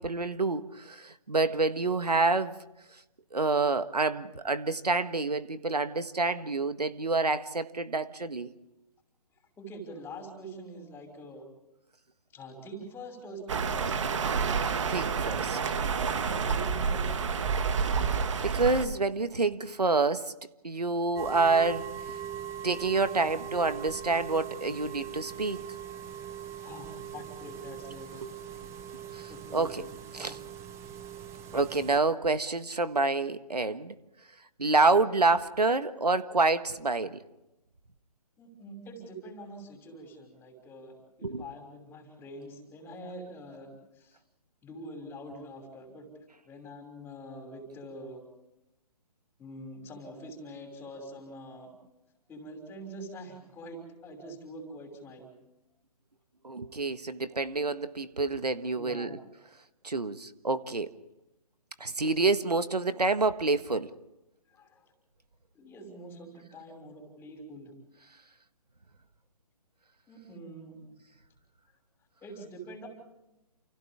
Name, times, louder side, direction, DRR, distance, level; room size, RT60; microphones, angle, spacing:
voice 1, 0.0-2.6 3.3-8.5 14.9-15.6 17.8-17.9 18.4-20.3 20.6-22.2 22.6-25.6 28.2-28.3 29.1-29.8 30.1-30.4 31.5-33.9 34.6-37.2 41.2-41.4 56.4-59.2 59.8-60.9 61.8-63.9, right 3 dB, 90° right, 11 dB, 1.6 m, -28 dB
voice 2, 9.6-11.4 12.3-14.0 16.4-17.1 26.6-28.3 29.3-30.4 38.4-44.2 44.6-46.1 46.5-48.2 49.4-51.7 52.3-55.3 58.8-59.1 64.5-64.9 65.5-67.7 70.1-70.9 72.2-72.9, right 1 dB, 10° left, 3 dB, 5.9 m, -45 dB
sound 1, 13.5-18.9, right 5 dB, 50° right, 2.1 m, -29 dB
sound 2, 21.2-32.0, right 9 dB, 15° right, 1.1 m, -41 dB
29.5 x 29.0 x 3.6 m, 0.92 s
figure-of-eight pair, 140°, 20 cm